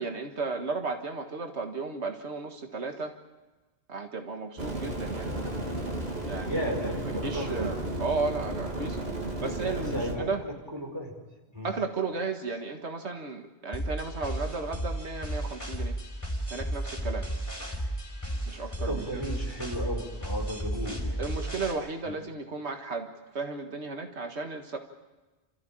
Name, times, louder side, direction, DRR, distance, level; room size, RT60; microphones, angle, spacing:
voice 1, 0.0-3.1 3.9-5.3 6.3-6.6 7.1-9.1 9.4-10.4 11.6-16.0 16.5-17.3 18.5-19.2 21.2-23.1 23.3-24.8, right 4 dB, 90° right, 4 dB, 1.9 m, -34 dB
sound 1, 4.6-10.1, right 1 dB, 65° right, 3.1 m, -33 dB
voice 2, 6.4-7.7 9.4-11.1 11.5-11.7 18.8-21.5, equal, 20° right, 0 dB, 4.9 m, -35 dB
sound 2, 13.7-21.7, right 1 dB, 15° left, 4.7 m, -33 dB
29.5 x 14.5 x 8.8 m, 1.2 s
omnidirectional pair, 1.1 m